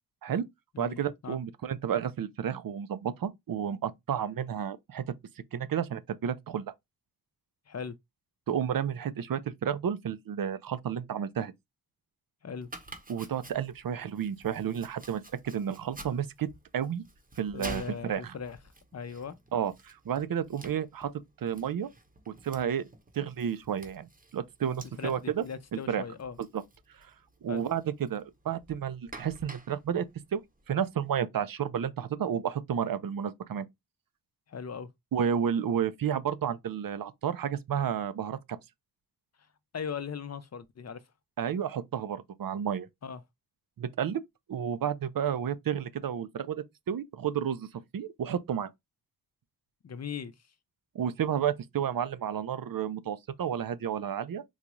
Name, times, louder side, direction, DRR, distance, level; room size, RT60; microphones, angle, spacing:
voice 1, 0.8-5.0 5.5-6.7 8.5-11.5 13.1-16.5 16.7-17.0 17.4-18.3 19.5-21.1 21.4-21.9 22.4-22.8 23.1-24.1 24.3-25.4 25.7-26.0 26.5-26.6 27.0-27.1 27.4-30.1 30.3-30.4 30.7-33.7 35.1-38.6 41.4-42.9 43.8-44.2 44.5-47.7 47.9-48.7 50.9-54.4, right 8 dB, 65° right, 0.5 m, -31 dB
voice 2, 7.7-8.0 12.4-12.7 17.5-18.6 18.9-19.4 25.0-26.4 27.5-27.6 34.5-34.9 39.7-41.0 43.0-43.2 49.8-50.3, left 6 dB, 45° left, 0.5 m, -38 dB
Domestic sounds home sounds, 12.6-31.1, right 2 dB, 25° right, 0.7 m, -50 dB
3.9 x 2.3 x 3.0 m
wide cardioid pair, 100°, 37 cm